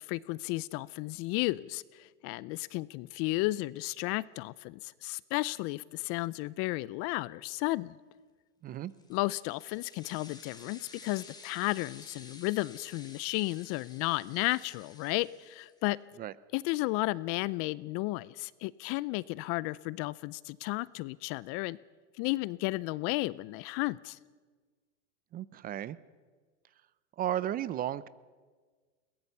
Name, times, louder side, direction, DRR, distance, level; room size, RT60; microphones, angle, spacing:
voice 1, 0.0-8.0 9.1-16.0 16.5-21.8 22.2-24.2, left 21 dB, 40° left, 21 dB, 0.5 m, -33 dB
voice 2, 8.6-8.9 16.2-16.3 25.3-26.0 27.2-28.1, right 11 dB, 25° right, 19 dB, 0.5 m, -34 dB
sound 1, 8.9-15.9, left 3 dB, 10° left, 2.8 m, -53 dB
22.0 x 18.5 x 6.8 m, 1.5 s
hypercardioid pair, 120°, 35 cm